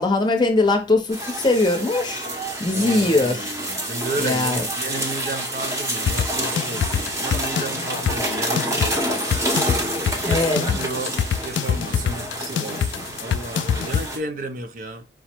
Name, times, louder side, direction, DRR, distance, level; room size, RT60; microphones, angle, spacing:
voice 1, 0.0-2.3 2.6-3.6 4.2-4.6 10.2-10.8, left 2 dB, 25° left, 0.7 m, -21 dB
sound 1, 1.1-14.2, right 1 dB, 15° right, 0.8 m, -28 dB
voice 2, 2.7-9.3 10.2-11.2 11.4-15.1, right 2 dB, 45° right, 0.5 m, -33 dB
sound 2, 6.1-14.1, left 8 dB, 85° left, 0.3 m, -25 dB
4.8 x 2.1 x 4.4 m
head